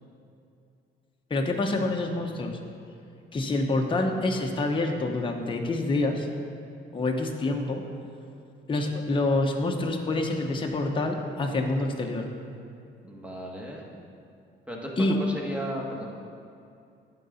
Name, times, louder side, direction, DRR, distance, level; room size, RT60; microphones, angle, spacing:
voice 1, 1.3-2.6 3.3-6.3 6.9-7.8 8.7-12.3 15.0-15.2, left 2 dB, 25° left, 2 dB, 0.8 m, -27 dB
voice 2, 13.0-13.9 14.7-16.1, equal, 5° right, -2 dB, 1.5 m, -35 dB
9.7 x 3.8 x 7.0 m, 2.5 s
cardioid pair, 90°, 20 cm